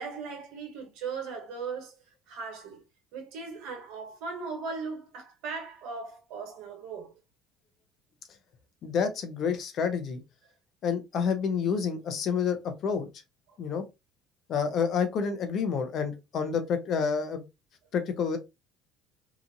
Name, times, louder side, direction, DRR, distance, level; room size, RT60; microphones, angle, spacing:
voice 1, 0.0-2.0 2.3-2.8 3.1-7.2 13.5-13.6, right 5 dB, 75° right, 1.1 m, -38 dB
voice 2, 8.8-10.2 10.8-13.1 13.6-13.8 14.5-17.4 17.9-18.4, left 6 dB, 55° left, 0.7 m, -28 dB
2.9 x 2.5 x 2.5 m
supercardioid pair, 85°, 0 cm